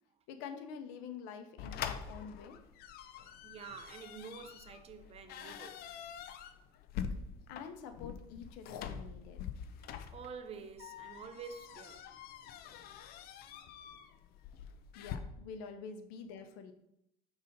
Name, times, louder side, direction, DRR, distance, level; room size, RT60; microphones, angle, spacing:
voice 1, 0.3-2.6 7.5-9.4 14.9-16.7, left 6 dB, 80° left, 0.9 m, -47 dB
sound 1, 1.6-15.2, left 8 dB, 55° left, 0.6 m, -45 dB
voice 2, 3.4-5.8 10.1-12.0, right 6 dB, 35° right, 0.6 m, -48 dB
5.5 x 4.0 x 5.2 m
cardioid pair, 135°, 19 cm